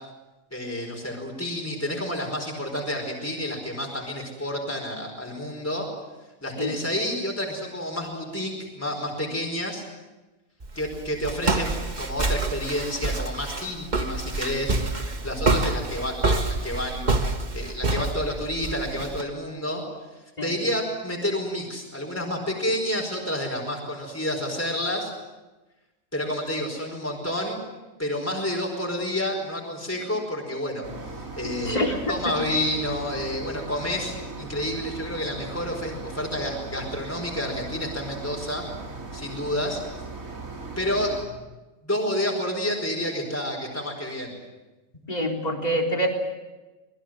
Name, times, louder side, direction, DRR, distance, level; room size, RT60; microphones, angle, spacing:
voice 1, 0.5-5.9 6.4-9.8 10.7-14.8 15.2-19.8 20.4-25.1 26.1-27.6 28.0-31.8 32.1-38.6 39.1-39.8 40.8-41.1 41.8-44.3, left 1 dB, 10° left, 0 dB, 4.8 m, -29 dB
Walk footsteps, 10.6-19.2, right 2 dB, 30° right, 1.6 m, -27 dB
sound 1, 30.8-41.3, right 3 dB, 75° right, 3.6 m, -38 dB
voice 2, 31.4-32.0 32.2-32.3 45.1-46.1, equal, 30° left, 1 dB, 3.9 m, -26 dB
25.5 x 21.0 x 7.7 m, 1.1 s
omnidirectional pair, 1.5 m